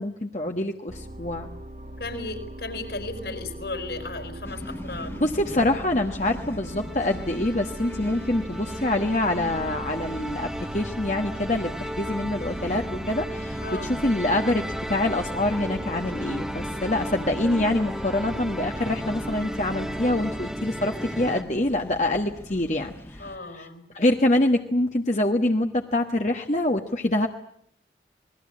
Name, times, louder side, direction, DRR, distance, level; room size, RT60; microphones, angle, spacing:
voice 1, 0.0-1.5 5.2-10.5 10.7-23.7 23.9-27.3, left 1 dB, 40° left, 3 dB, 1.3 m, -25 dB
sound 1, 0.9-20.5, right 1 dB, 45° right, 2.4 m, -40 dB
voice 2, 2.0-5.2 13.6-13.9 23.2-23.8, left 2 dB, 70° left, 8 dB, 5.9 m, -35 dB
sound 2, 4.4-23.4, equal, 15° left, 1.7 m, -42 dB
sound 3, 6.1-21.4, equal, 5° right, 1.2 m, -35 dB
28.0 x 21.0 x 8.6 m, 0.68 s
head